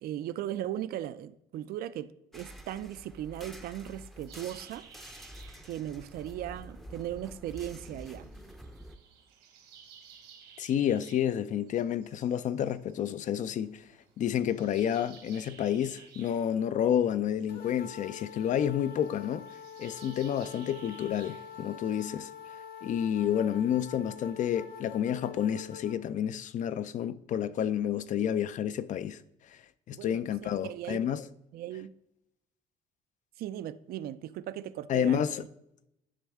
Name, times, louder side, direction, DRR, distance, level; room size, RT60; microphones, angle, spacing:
voice 1, 0.0-4.9 5.6-8.3 29.9-31.0 31.5-31.9 33.4-35.5, right 12 dB, 65° right, 0.4 m, -38 dB
sound 1, 2.3-9.0, equal, ahead, 0.6 m, -48 dB
sound 2, 4.3-22.3, right 7 dB, 85° right, 1.6 m, -57 dB
voice 2, 10.6-13.8 14.2-19.5 19.8-22.3 22.8-29.2 29.9-31.2 34.9-35.4, left 9 dB, 50° left, 0.4 m, -30 dB
sound 3, 17.5-26.0, left 7 dB, 65° left, 0.9 m, -46 dB
10.0 x 3.5 x 3.5 m
cardioid pair, 110°, 17 cm